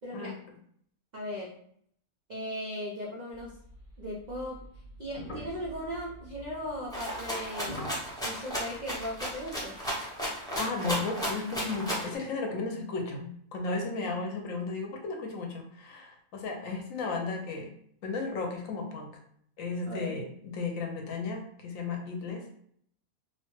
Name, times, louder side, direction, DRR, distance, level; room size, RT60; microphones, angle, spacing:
voice 1, 0.0-0.4 1.1-1.6 2.3-3.6 4.0-4.6 5.0-7.8 8.2-9.8 14.0-14.2 19.9-20.1, equal, 80° right, -4 dB, 0.4 m, -38 dB
sound 1, 3.3-9.9, equal, 50° left, 0.6 m, -46 dB
Rattle (instrument), 6.9-12.1, equal, 5° left, 0.4 m, -34 dB
voice 2, 10.6-17.7 18.0-19.1 19.6-22.4, left 3 dB, 70° left, 2 dB, 1.0 m, -34 dB
2.7 x 2.1 x 3.0 m, 0.66 s
omnidirectional pair, 1.5 m